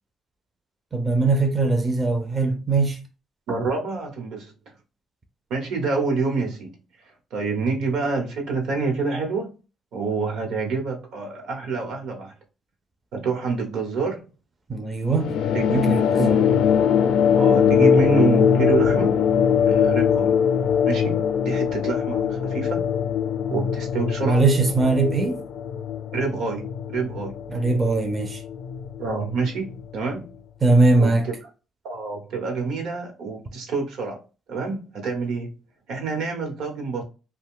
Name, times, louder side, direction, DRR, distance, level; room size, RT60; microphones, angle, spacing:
voice 1, 0.9-3.0 14.7-15.4 15.7-16.4 24.3-25.4 27.5-28.4 30.6-31.3, right 3 dB, 25° right, 0.4 m, -21 dB
voice 2, 3.5-4.5 5.5-9.5 9.9-12.3 13.1-14.3 15.5-16.6 17.4-19.2 19.6-20.3 20.8-21.2 21.4-22.8 23.5-24.4 26.1-27.3 29.0-30.3 31.0-31.5 31.8-34.2 34.5-35.5 35.9-37.0, right 4 dB, 85° right, 1.0 m, -27 dB
sound 1, 15.2-30.0, left 8 dB, 80° left, 0.4 m, -22 dB
2.5 x 2.2 x 3.6 m
cardioid pair, 125°, 0 cm